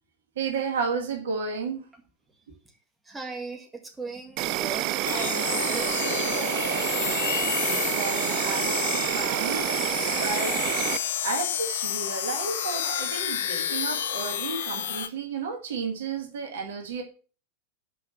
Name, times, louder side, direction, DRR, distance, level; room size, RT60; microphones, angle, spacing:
voice 1, 0.4-1.9 2.5-2.6 7.8-9.7 10.1-10.7 11.2-17.0, right 5 dB, 60° right, 3 dB, 2.0 m, -32 dB
voice 2, 3.1-5.9, right 3 dB, 10° right, 1 dB, 1.8 m, -38 dB
Insect, 4.4-11.0, right 15 dB, 40° right, 0.4 m, -28 dB
sound 1, 5.0-15.1, left 10 dB, 55° left, 0.8 m, -30 dB
6.1 x 5.6 x 6.2 m, 0.39 s
figure-of-eight pair, 90°, 0 cm